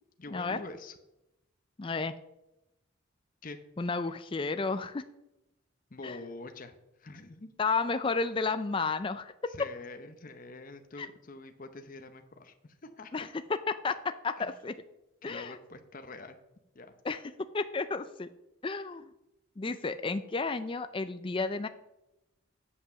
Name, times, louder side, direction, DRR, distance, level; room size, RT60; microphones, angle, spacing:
voice 1, 0.2-1.0 3.4-3.6 5.9-6.7 7.0-7.5 9.5-13.3 14.4-14.5 15.2-16.4 16.7-16.9, left 2 dB, 40° left, 7 dB, 0.8 m, -45 dB
voice 2, 1.8-2.1 3.8-5.0 6.0-6.2 7.6-9.3 11.0-11.1 13.1-13.3 13.7-14.7 15.2-15.6 17.0-17.2 17.5-18.3 18.6-19.1 19.6-21.7, left 4 dB, 25° left, 10 dB, 0.4 m, -32 dB
8.5 x 7.6 x 7.0 m, 0.91 s
head